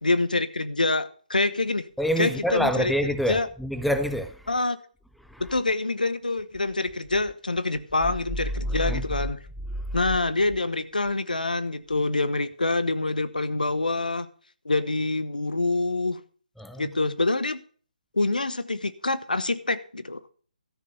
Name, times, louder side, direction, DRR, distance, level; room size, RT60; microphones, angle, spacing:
voice 1, 0.0-1.9 2.2-2.9 3.3-3.5 4.5-4.8 5.4-9.4 9.9-14.3 14.6-16.2 16.8-17.6 18.1-20.2, left 2 dB, 75° left, 1.0 m, -26 dB
voice 2, 2.0-4.4 5.3-5.4 8.8-9.0 16.6-16.9, equal, ahead, 0.5 m, -26 dB
13.0 x 6.8 x 6.6 m
figure-of-eight pair, 145°, 5 cm